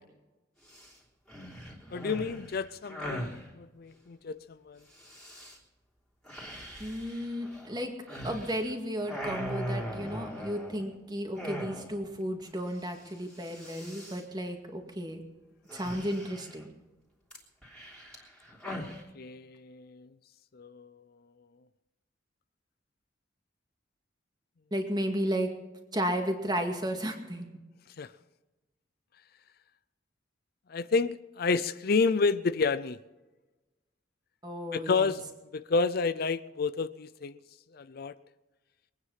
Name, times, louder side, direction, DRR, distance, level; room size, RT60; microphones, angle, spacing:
sound 1, 0.7-0.9 1.3-3.4 4.9-5.6 6.3-8.7 9.0-10.9 11.3-12.1 12.4-12.5 12.7-13.0 13.3-14.2 15.7-16.6 17.3-19.0, equal, 5° left, 3.3 m, -40 dB
voice 1, 1.9-4.8 18.7-20.1 20.5-20.9 28.0-28.1 30.7-33.0 34.7-35.2 35.5-37.4 37.7-38.1, left 4 dB, 55° left, 0.5 m, -30 dB
voice 2, 6.8-7.9 8.2-15.2 15.7-16.7 24.7-25.5 25.9-27.5 34.4-35.1, equal, 20° right, 2.1 m, -33 dB
22.5 x 9.6 x 5.7 m
head